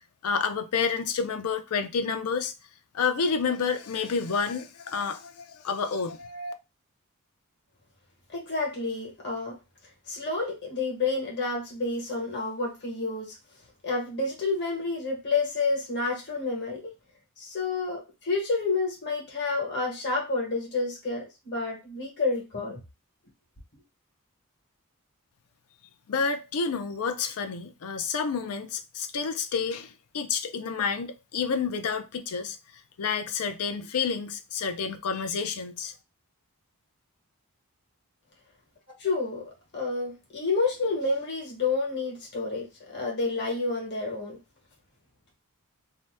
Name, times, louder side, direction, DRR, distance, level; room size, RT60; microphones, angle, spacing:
voice 1, 0.2-2.5 2.9-6.5 26.1-32.6 33.0-35.9, left 5 dB, 70° left, 0.5 m, -29 dB
voice 2, 8.3-9.6 10.1-13.4 13.8-16.9 17.4-22.8 39.0-39.4 39.7-44.4, left 3 dB, 50° left, 1.2 m, -29 dB
2.7 x 2.1 x 3.4 m
head